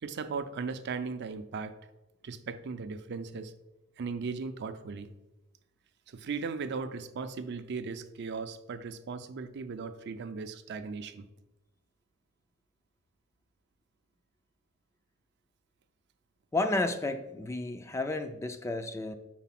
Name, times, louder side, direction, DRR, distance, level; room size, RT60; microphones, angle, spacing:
voice 1, 0.0-1.7 2.2-3.5 4.0-5.1 6.1-11.3, right 4 dB, 55° right, 10 dB, 0.4 m, -37 dB
voice 2, 16.5-19.1, left 2 dB, 15° left, 8 dB, 0.3 m, -32 dB
4.6 x 4.1 x 5.8 m, 1.0 s
head